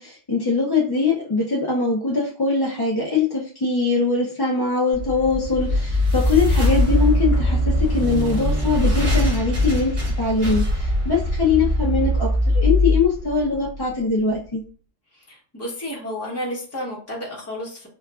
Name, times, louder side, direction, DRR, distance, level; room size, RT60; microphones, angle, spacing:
voice 1, 0.0-12.3 12.5-14.6, left 4 dB, 30° left, -5 dB, 0.5 m, -22 dB
sound 1, 4.9-14.1, left 1 dB, 60° right, 2.4 m, -21 dB
voice 2, 15.3-17.9, left 1 dB, 15° left, -3 dB, 0.9 m, -31 dB
4.9 x 2.3 x 2.4 m, 0.41 s
omnidirectional pair, 1.3 m